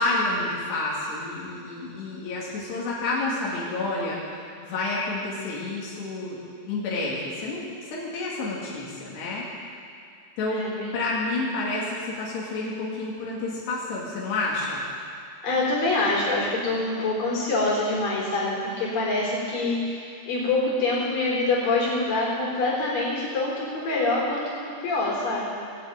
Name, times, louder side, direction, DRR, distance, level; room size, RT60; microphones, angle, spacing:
voice 1, 0.0-4.2 4.6-6.4 6.7-9.4 10.4-10.6 10.9-14.8, left 2 dB, 85° left, -6 dB, 4.5 m, -29 dB
voice 2, 10.5-10.9 15.4-25.6, left 2 dB, 55° left, -5 dB, 5.6 m, -25 dB
19.0 x 7.9 x 9.0 m, 2.5 s
omnidirectional pair, 4.7 m